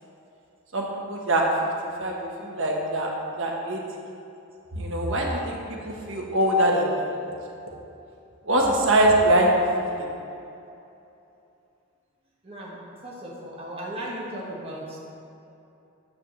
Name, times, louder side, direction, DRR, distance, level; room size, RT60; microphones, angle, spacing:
voice 1, 0.7-1.4 2.0-2.1 2.4-3.1 3.4-3.8 4.7-5.6 5.8-7.2 8.5-9.5 9.8-10.0, right 1 dB, 60° right, -1 dB, 1.3 m, -23 dB
voice 2, 12.4-12.8 13.0-15.0, right 1 dB, 25° right, -5 dB, 1.2 m, -36 dB
9.7 x 3.5 x 6.7 m, 2.8 s
head